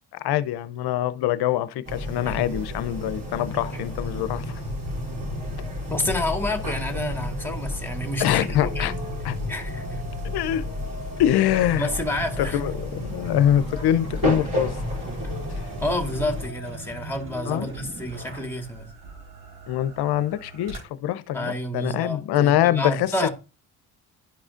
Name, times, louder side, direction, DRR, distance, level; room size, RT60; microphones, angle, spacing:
voice 1, 0.2-4.6 8.2-8.9 9.2-9.3 10.2-10.6 11.2-11.9 12.5-14.8 17.5-17.7 19.7-23.1, left 11 dB, 60° left, 0.7 m, -24 dB
sound 1, 1.9-16.5, left 1 dB, 50° right, 3.2 m, -31 dB
voice 2, 5.9-8.9 9.5-10.0 11.8-12.6 15.8-18.9 21.3-23.3, left 1 dB, 5° left, 1.9 m, -29 dB
sound 2, 5.9-18.5, right 1 dB, 25° right, 1.4 m, -41 dB
sound 3, 15.2-20.8, right 3 dB, 80° right, 4.0 m, -46 dB
11.5 x 4.8 x 2.5 m
supercardioid pair, 60°, 44 cm